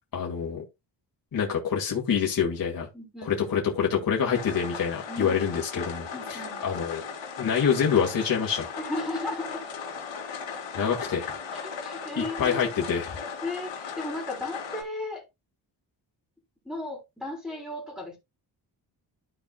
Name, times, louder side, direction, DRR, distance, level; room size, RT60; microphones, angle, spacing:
voice 1, 0.1-0.6 1.3-2.9 3.2-7.0 7.4-8.7 10.7-11.3 12.2-13.2, left 7 dB, 50° left, 2.1 m, -26 dB
voice 2, 2.9-3.7 5.1-5.4 6.1-6.6 8.7-9.7 10.7-10.9 11.5-12.6 13.4-15.2 16.6-18.2, left 2 dB, ahead, 3.2 m, -35 dB
sound 1, 4.3-14.8, left 6 dB, 85° left, 3.1 m, -37 dB
14.0 x 4.7 x 2.2 m
wide cardioid pair, 140°, 44 cm